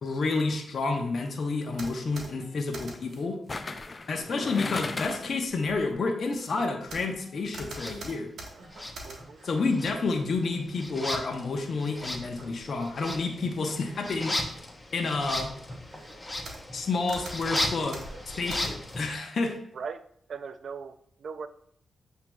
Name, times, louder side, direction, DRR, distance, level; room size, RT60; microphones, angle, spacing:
voice 1, 0.0-3.4 4.1-8.3 9.4-14.4 14.9-15.5 16.7-18.0 18.3-19.5, left 3 dB, 60° left, 3 dB, 0.8 m, -29 dB
sound 1, 0.9-1.1 3.5-5.4 5.8-5.9, left 3 dB, 40° left, 0.3 m, -36 dB
sound 2, 1.7-3.3 3.7-4.3 4.9-9.6 10.1-10.6 11.6-11.7 12.1-13.3 13.6-14.0 14.5-14.6 15.0-16.8 17.1-19.1, right 2 dB, 80° right, 1.0 m, -45 dB
sound 3, 7.7-8.0 8.7-9.5 9.7-19.2, left 1 dB, 20° left, 0.7 m, -36 dB
voice 2, 9.1-9.4 19.7-20.0 20.3-21.5, right 5 dB, 65° right, 12 dB, 0.4 m, -39 dB
7.6 x 2.8 x 2.3 m, 0.64 s
cardioid pair, 60°, 0 cm